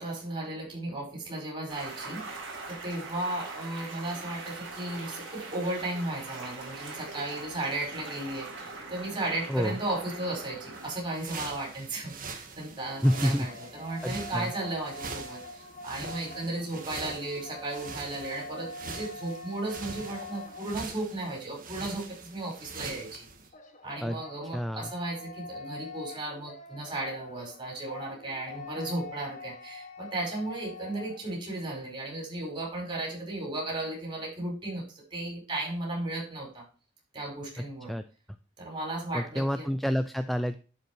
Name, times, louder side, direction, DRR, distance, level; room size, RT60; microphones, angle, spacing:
voice 1, 0.0-2.3 2.7-23.3 23.8-36.7 37.1-38.0 38.6-39.7, right 2 dB, 25° right, -1 dB, 5.0 m, -35 dB
sound 1, 1.7-10.9, right 3 dB, 65° right, 5.0 m, -42 dB
sound 2, 10.7-23.5, right 4 dB, 45° right, 1.7 m, -43 dB
sound 3, 12.5-21.2 23.5-31.3, left 2 dB, 40° left, 1.4 m, -45 dB
voice 2, 13.0-13.5 14.0-14.5 24.0-24.2 24.5-24.9 37.9-38.0 39.1-40.6, equal, ahead, 9 dB, 0.3 m, -28 dB
11.5 x 5.5 x 4.6 m, 0.35 s
head